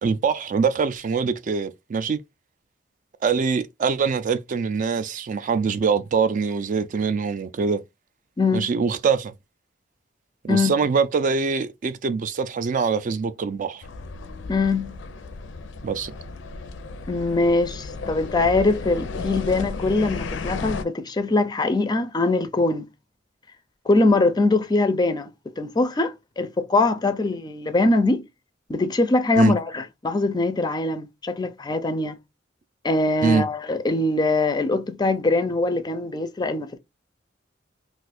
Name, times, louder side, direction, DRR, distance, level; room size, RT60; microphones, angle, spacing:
voice 1, 0.0-2.2 3.2-7.8 8.5-9.3 10.4-13.8 15.8-16.1 29.4-29.5 33.2-33.5, right 5 dB, 45° right, 0.3 m, -23 dB
voice 2, 8.4-8.7 10.5-10.7 14.5-15.0 17.1-22.9 23.9-25.3 25.6-28.2 28.7-32.1 32.8-36.8, left 2 dB, 20° left, 0.4 m, -22 dB
sound 1, 13.8-20.8, left 3 dB, 90° left, 0.5 m, -34 dB
2.5 x 2.3 x 4.1 m
head